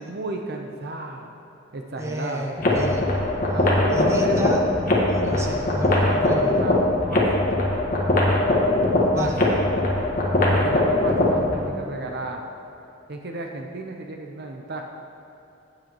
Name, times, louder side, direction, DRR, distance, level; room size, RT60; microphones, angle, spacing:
voice 1, 0.0-1.3 1.7-2.4 3.5-4.5 6.0-6.8 7.1-7.3 9.1-9.6 10.4-12.4 13.1-14.8, right 2 dB, 50° right, 2 dB, 0.7 m, -33 dB
voice 2, 2.0-3.1 3.9-4.6 5.1-6.5 9.1-9.4, right 1 dB, 15° right, 0 dB, 0.9 m, -31 dB
sound 1, 2.6-11.6, left 1 dB, 40° left, 1.5 m, -21 dB
16.0 x 7.8 x 3.0 m, 2.9 s
head